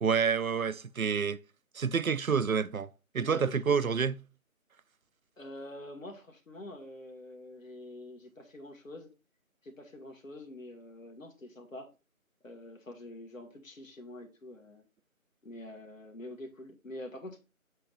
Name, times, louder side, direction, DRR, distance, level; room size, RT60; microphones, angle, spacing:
voice 1, 0.0-1.4 1.7-2.9 3.1-4.2, right 6 dB, 75° right, 0.7 m, -28 dB
voice 2, 3.2-3.7 5.4-9.1 9.6-11.9 12.4-14.9 15.4-17.4, left 1 dB, 65° left, 1.8 m, -46 dB
7.5 x 3.0 x 5.5 m
figure-of-eight pair, 165°, 42 cm